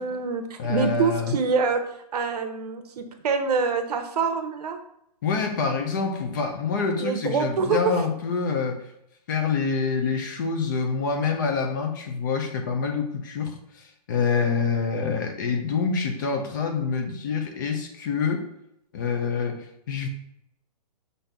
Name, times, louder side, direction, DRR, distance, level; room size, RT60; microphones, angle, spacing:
voice 1, 0.0-1.8 2.1-4.8 7.0-7.8, right 5 dB, 70° right, 6 dB, 0.8 m, -25 dB
voice 2, 0.6-1.3 5.2-8.8 9.3-18.5 18.9-20.1, left 5 dB, 30° left, 4 dB, 0.5 m, -26 dB
5.7 x 2.7 x 3.4 m, 0.76 s
hypercardioid pair, 170°, 21 cm